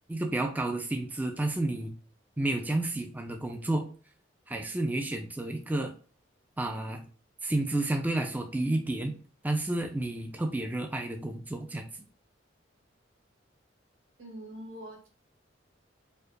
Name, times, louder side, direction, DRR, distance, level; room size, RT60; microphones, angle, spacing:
voice 1, 0.1-1.9 2.4-3.9 4.5-5.9 6.6-7.0 7.4-9.1 9.4-11.8, right 2 dB, 10° right, 4 dB, 0.3 m, -31 dB
voice 2, 14.2-15.1, right 1 dB, 85° right, -2 dB, 1.4 m, -43 dB
4.3 x 2.5 x 2.5 m, 0.38 s
head